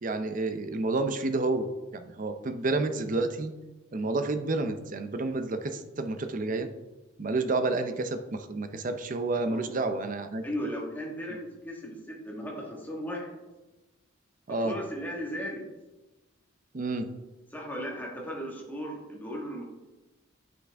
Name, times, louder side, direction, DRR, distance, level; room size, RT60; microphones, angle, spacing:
voice 1, 0.0-3.5 3.9-6.7 7.2-10.4 14.5-14.8 16.7-17.2, right 2 dB, 40° right, 8 dB, 0.5 m, -30 dB
voice 2, 10.4-13.3 14.5-15.7 17.5-19.7, equal, 10° left, -3 dB, 1.4 m, -36 dB
7.8 x 5.9 x 3.4 m, 1.1 s
head